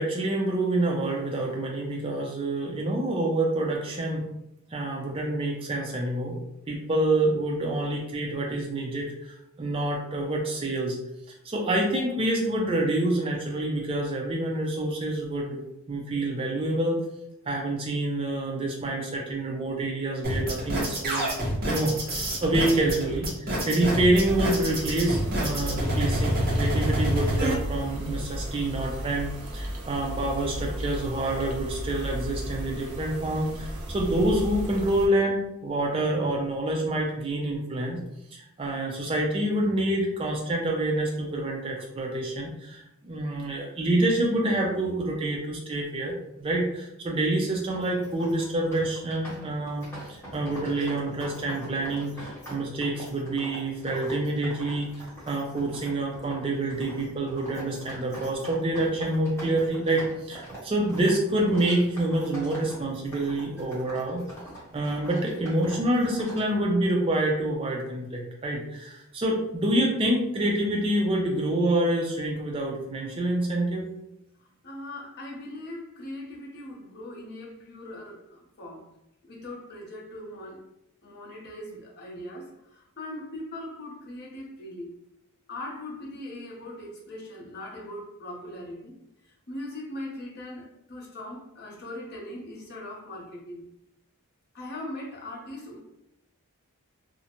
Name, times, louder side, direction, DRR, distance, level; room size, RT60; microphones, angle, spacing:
voice 1, 0.0-4.3 4.7-6.4 6.7-9.3 9.6-11.0 11.4-15.6 15.9-17.0 17.5-21.3 21.7-23.3 23.7-38.0 38.3-64.2 64.7-73.9, right 1 dB, 25° right, -1 dB, 0.3 m, -27 dB
sound 1, 20.2-27.5, right 1 dB, 40° right, 0.8 m, -27 dB
sound 2, 24.1-35.1, equal, 75° right, 0.5 m, -35 dB
sound 3, 47.6-66.5, right 1 dB, 10° left, 0.8 m, -44 dB
voice 2, 74.6-78.9 79.2-80.6 81.0-84.9 85.5-89.0 89.2-93.7 94.5-95.8, left 1 dB, 45° left, -2 dB, 0.6 m, -40 dB
2.5 x 2.1 x 2.8 m, 0.82 s
head